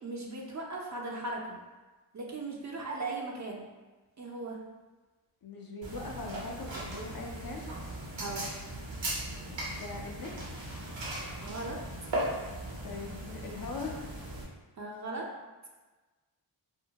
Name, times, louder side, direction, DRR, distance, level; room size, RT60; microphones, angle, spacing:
voice 1, 0.0-1.6 2.1-3.7 4.2-4.6 8.2-8.5 11.4-11.8 14.8-15.3, right 2 dB, 35° right, -1 dB, 0.5 m, -38 dB
voice 2, 5.4-7.7 9.7-10.6 12.8-14.1, left 3 dB, 50° left, 0 dB, 0.5 m, -41 dB
sound 1, 5.8-14.4, right 1 dB, 60° right, 0.8 m, -38 dB
2.4 x 2.1 x 2.8 m, 1.2 s
cardioid pair, 40°, 49 cm